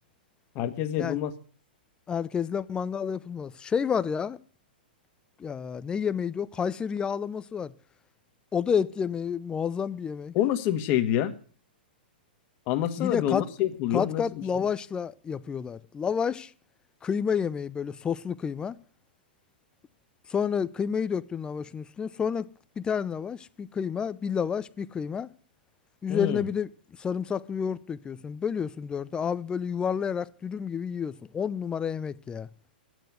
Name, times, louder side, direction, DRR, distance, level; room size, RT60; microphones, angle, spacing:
voice 1, 0.5-1.3 10.3-11.3 12.7-14.6 26.1-26.4, left 12 dB, 40° left, 1.6 m, -27 dB
voice 2, 2.1-4.4 5.4-7.7 8.5-10.3 13.0-13.4 13.9-16.5 17.0-18.8 20.3-22.5 22.8-25.3 26.0-26.7 27.0-32.5, left 7 dB, 15° left, 0.7 m, -30 dB
12.0 x 9.4 x 8.0 m
hypercardioid pair, 125°, 5 cm